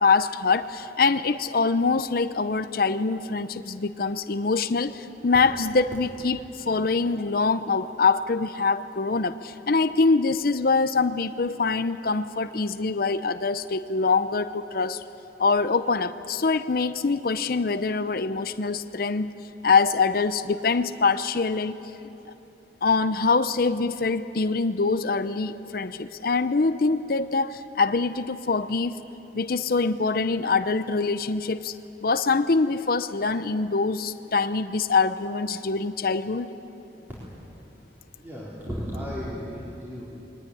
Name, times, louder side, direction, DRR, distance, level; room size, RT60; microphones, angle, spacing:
voice 1, 0.0-15.0 15.4-19.3 19.6-21.8 22.8-29.0 29.3-31.7 32.0-36.5, left 4 dB, 55° left, 11 dB, 0.6 m, -24 dB
voice 2, 38.2-40.1, equal, 10° right, -8 dB, 3.9 m, -34 dB
21.5 x 19.0 x 9.9 m, 3.0 s
head